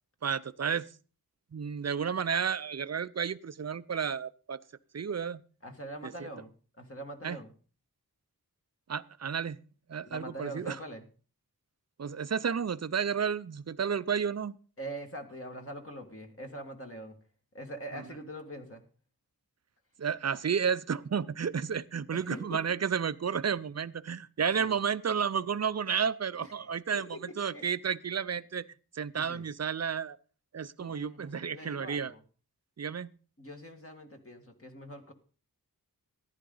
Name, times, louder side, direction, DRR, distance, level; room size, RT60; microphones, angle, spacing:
voice 1, 0.2-0.8 1.5-4.6 4.9-5.4 7.2-7.4 8.9-9.6 9.9-10.7 12.0-14.6 20.0-27.1 27.4-28.6 28.9-30.2 30.5-32.1 32.8-33.1, right 7 dB, 45° right, 16 dB, 0.6 m, -31 dB
voice 2, 5.6-6.5 6.8-7.5 10.0-11.1 14.8-17.2 17.5-18.8 22.1-22.8 24.6-24.8 26.4-27.7 29.2-29.4 30.8-32.2 33.4-35.1, right 1 dB, 35° left, 3 dB, 1.9 m, -43 dB
14.5 x 10.5 x 3.9 m, 0.39 s
wide cardioid pair, 55°, 38 cm